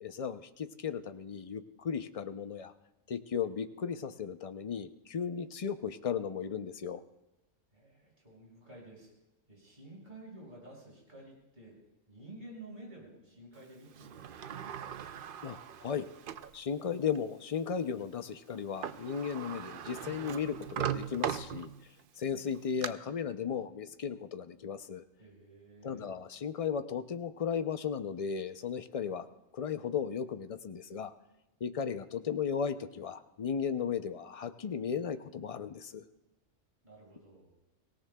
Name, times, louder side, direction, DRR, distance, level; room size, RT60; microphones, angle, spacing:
voice 1, 0.0-2.7 3.1-7.0 15.4-16.1 16.5-21.7 22.2-25.0 25.8-29.3 29.5-31.1 31.6-36.0, left 7 dB, 55° left, 10 dB, 0.4 m, -35 dB
voice 2, 7.7-9.1 9.5-11.8 12.1-15.1 25.2-26.1 36.8-37.5, right 2 dB, 35° right, -3 dB, 5.6 m, -52 dB
Sliding door, 14.0-16.6 17.2-17.3 18.6-18.7 18.8-22.0 22.5-22.9, right 9 dB, 55° right, 0.6 m, -39 dB
24.5 x 17.5 x 2.3 m, 0.93 s
omnidirectional pair, 1.3 m